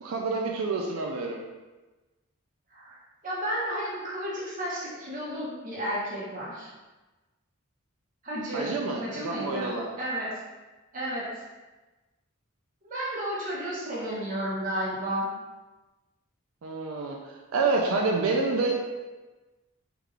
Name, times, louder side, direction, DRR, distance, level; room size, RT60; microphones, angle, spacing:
voice 1, 0.0-1.4 8.5-9.9 16.6-17.2 17.5-18.8, right 3 dB, 80° right, 0 dB, 0.4 m, -27 dB
voice 2, 3.2-6.7 8.2-8.7 9.0-9.7 10.0-10.4 10.9-11.4 12.8-15.3, equal, 40° right, -7 dB, 0.9 m, -32 dB
3.6 x 2.4 x 3.2 m, 1.2 s
head